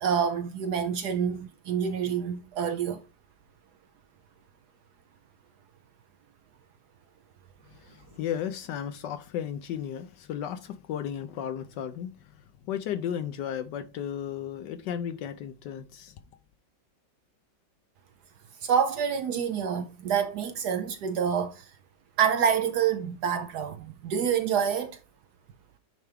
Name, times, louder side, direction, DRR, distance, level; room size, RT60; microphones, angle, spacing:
voice 1, 0.0-3.0 18.6-21.6 22.2-25.0, right 7 dB, 70° right, 1.0 m, -27 dB
voice 2, 7.8-12.2 12.6-16.1, left 9 dB, 75° left, 1.1 m, -34 dB
9.2 x 3.4 x 3.4 m
omnidirectional pair, 2.2 m